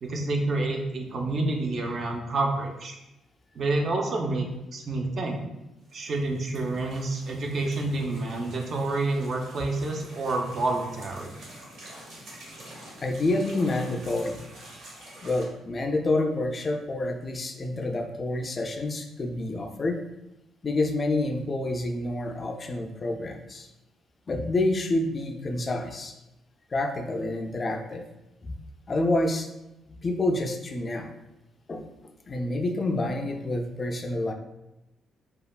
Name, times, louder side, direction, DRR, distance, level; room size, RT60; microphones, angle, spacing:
voice 1, 0.0-2.9 3.6-5.4 5.9-11.3, right 2 dB, 50° right, 2 dB, 0.5 m, -28 dB
sound 1, 5.9-15.5, right 1 dB, 75° right, 0.8 m, -47 dB
voice 2, 13.0-14.4 15.2-20.0 20.6-23.7 24.3-26.1 26.7-28.0 28.4-28.6 28.9-29.5 29.9-31.1 31.7-34.3, left 2 dB, 35° left, 5 dB, 0.3 m, -28 dB
3.1 x 2.3 x 2.3 m, 0.93 s
cardioid pair, 90°, 0 cm